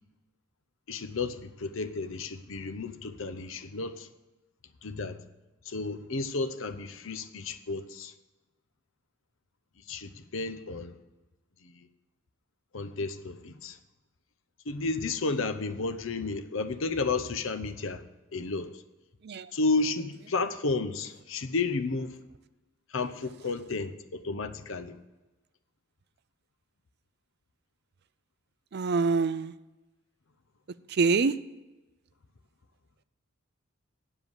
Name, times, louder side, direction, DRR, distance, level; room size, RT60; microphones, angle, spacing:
voice 1, 0.9-4.1 4.8-5.2 5.7-8.1 9.9-10.9 11.6-11.8 12.7-13.8 14.7-18.0 18.3-18.8 19.5-22.2 22.9-25.0, left 3 dB, 65° left, 0.8 m, -32 dB
voice 2, 28.7-29.5 30.9-31.3, right 4 dB, 50° right, 0.4 m, -25 dB
8.9 x 7.4 x 8.0 m
head